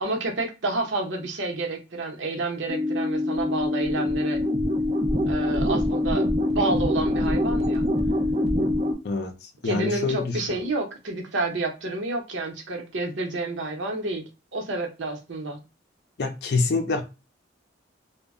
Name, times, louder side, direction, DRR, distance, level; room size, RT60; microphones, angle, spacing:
voice 1, 0.0-4.4 5.3-6.3 6.5-7.8 9.6-14.2 14.5-15.6, right 2 dB, 80° right, 0.8 m, -29 dB
sound 1, 2.7-8.9, left 1 dB, 30° right, 0.5 m, -24 dB
voice 2, 9.6-10.7 16.2-17.0, left 3 dB, 60° left, 0.5 m, -26 dB
2.2 x 2.0 x 3.5 m
head